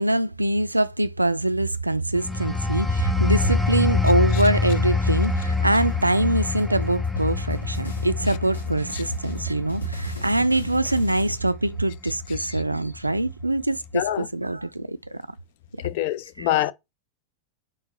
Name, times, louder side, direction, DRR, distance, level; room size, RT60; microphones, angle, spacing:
voice 1, 0.0-15.2 16.4-16.5, right 1 dB, 85° right, 0.3 m, -24 dB
sound 1, 2.1-12.5 12.9-13.2, left 4 dB, ahead, 0.6 m, -26 dB
sound 2, 5.8-11.4, equal, 80° left, 1.1 m, -38 dB
voice 2, 13.9-14.3 15.8-16.7, left 14 dB, 50° left, 0.4 m, -25 dB
3.8 x 2.5 x 4.2 m
figure-of-eight pair, 90°, 0 cm